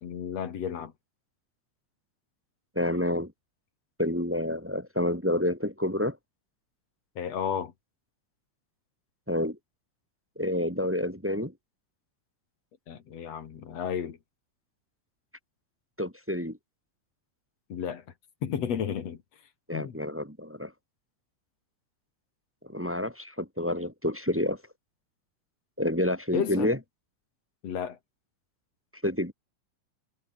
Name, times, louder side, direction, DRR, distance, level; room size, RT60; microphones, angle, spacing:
voice 1, 0.0-0.9 7.2-7.7 12.9-14.2 17.7-18.0 18.4-19.2 19.7-20.0 26.3-26.8 27.6-28.0, left 8 dB, 60° left, 3.0 m, -32 dB
voice 2, 2.7-3.3 4.0-6.2 9.3-9.6 10.3-11.5 16.0-16.6 19.7-20.7 22.6-24.6 25.8-26.8 29.0-29.3, left 1 dB, 5° right, 1.5 m, -28 dB
omnidirectional pair, 3.4 m